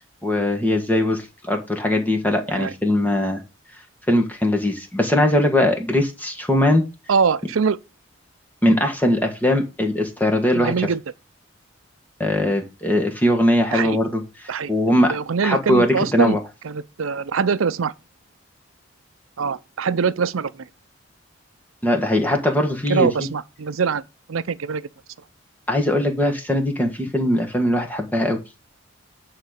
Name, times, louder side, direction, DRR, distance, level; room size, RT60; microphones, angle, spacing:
voice 1, 0.2-3.4 4.1-6.8 8.6-10.9 12.2-15.1 15.4-16.4 21.8-23.3 25.7-28.4, left 1 dB, 10° left, 1.5 m, -20 dB
voice 2, 7.1-7.8 10.6-11.0 13.7-14.0 14.5-16.4 16.6-17.9 19.4-20.7 22.9-24.0 24.3-24.8, right 5 dB, 90° right, 0.6 m, -23 dB
9.6 x 3.9 x 6.4 m
head